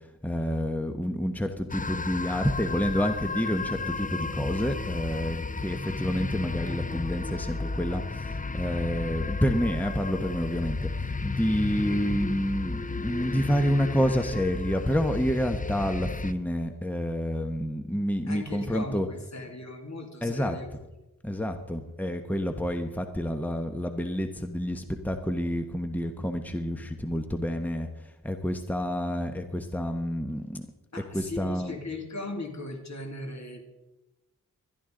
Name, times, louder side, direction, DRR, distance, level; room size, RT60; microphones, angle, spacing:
voice 1, 0.2-10.9 11.2-19.1 20.2-20.8 21.2-27.9 28.2-30.7 31.1-31.8, equal, 5° left, 6 dB, 1.1 m, -29 dB
sound 1, 1.7-16.3, left 4 dB, 25° left, 0.5 m, -33 dB
voice 2, 18.3-20.7 30.9-33.7, left 2 dB, 55° left, 3 dB, 2.4 m, -38 dB
20.5 x 12.5 x 3.8 m, 1.0 s
wide cardioid pair, 60°, 33 cm